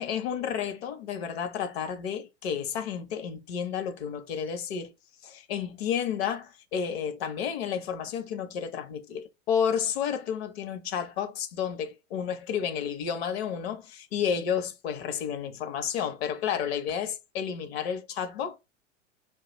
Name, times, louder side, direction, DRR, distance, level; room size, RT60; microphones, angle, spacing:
voice 1, 0.0-4.9 5.2-18.6, left 8 dB, 55° left, 0.8 m, -31 dB
4.7 x 2.3 x 2.9 m
hypercardioid pair, 115°, 37 cm